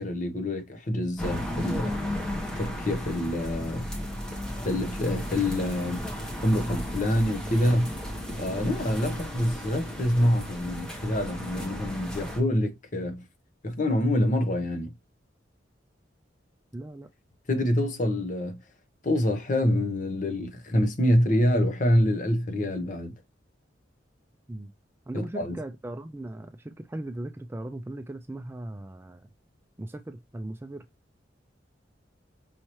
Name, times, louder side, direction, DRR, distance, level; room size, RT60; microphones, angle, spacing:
voice 1, 0.0-1.9 2.6-3.9 4.6-6.1 6.4-7.9 8.4-13.2 13.6-14.9 17.5-18.6 19.0-23.1 25.3-25.6, left 1 dB, 45° left, 0.9 m, -26 dB
sound 1, 1.2-12.4, equal, 5° left, 0.9 m, -34 dB
voice 2, 16.7-17.1 24.5-24.7 25.1-29.3 29.8-30.9, right 1 dB, 15° right, 0.3 m, -38 dB
5.6 x 2.8 x 3.0 m
head